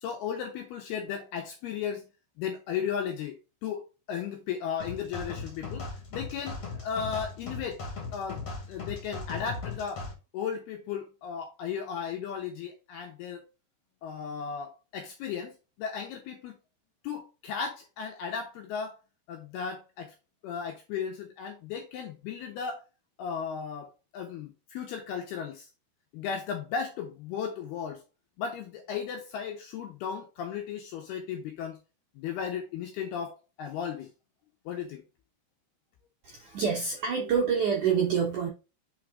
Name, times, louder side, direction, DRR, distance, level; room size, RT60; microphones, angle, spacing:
voice 1, 0.0-2.1 2.4-3.8 4.1-5.9 6.1-7.8 8.1-10.1 10.3-13.4 14.0-15.5 15.8-16.5 17.0-19.0 19.3-20.1 20.4-22.8 23.2-25.7 26.1-28.0 28.4-31.8 32.2-34.1 34.7-35.0, left 7 dB, 75° left, 2.4 m, -35 dB
sound 1, 4.8-10.1, left 4 dB, 45° left, 2.3 m, -38 dB
voice 2, 36.2-38.5, right 6 dB, 70° right, 1.9 m, -27 dB
5.9 x 4.7 x 3.6 m
omnidirectional pair, 5.4 m